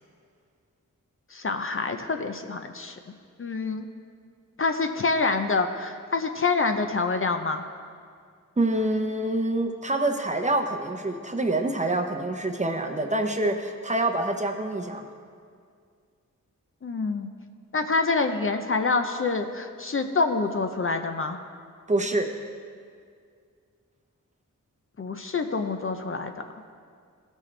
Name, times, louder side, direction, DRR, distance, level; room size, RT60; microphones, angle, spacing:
voice 1, 1.3-3.0 3.4-3.9 4.6-7.6 16.8-17.3 17.7-21.4 25.0-26.3, left 4 dB, 40° left, 6 dB, 0.6 m, -26 dB
voice 2, 8.6-15.1 21.9-22.3, right 2 dB, 20° right, 4 dB, 0.7 m, -26 dB
16.0 x 6.2 x 3.3 m, 2.2 s
wide cardioid pair, 90°, 32 cm